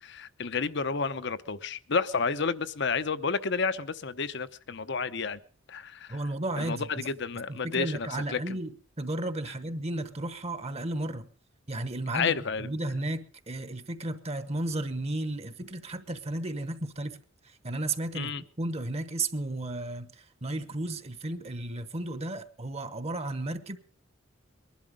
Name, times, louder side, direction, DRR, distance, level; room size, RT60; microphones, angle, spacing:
voice 1, 0.0-5.4 5.7-6.2 6.6-8.4 12.1-12.7 18.1-18.4, left 5 dB, 60° left, 0.9 m, -31 dB
voice 2, 6.1-7.1 7.5-11.3 11.7-18.3 18.6-23.8, right 2 dB, 30° right, 1.1 m, -34 dB
21.5 x 11.5 x 5.1 m
head